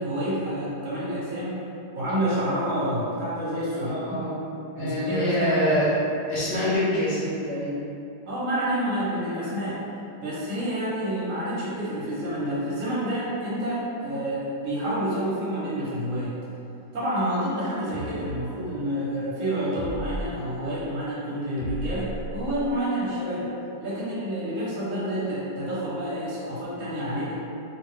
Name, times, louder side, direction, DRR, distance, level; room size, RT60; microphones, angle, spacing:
voice 1, 0.0-1.6 1.9-4.2 4.8-5.7 8.2-9.8 10.2-16.3 16.9-23.5 23.8-27.3, equal, 50° right, -9 dB, 1.2 m, -28 dB
voice 2, 3.7-4.4 4.7-5.9 6.3-7.8, equal, 80° left, -9 dB, 1.3 m, -25 dB
sound 1, 17.9-18.1 19.7-20.3 21.6-22.7, right 1 dB, 65° left, 0.9 m, -34 dB
3.0 x 2.4 x 3.1 m, 2.7 s
omnidirectional pair, 1.9 m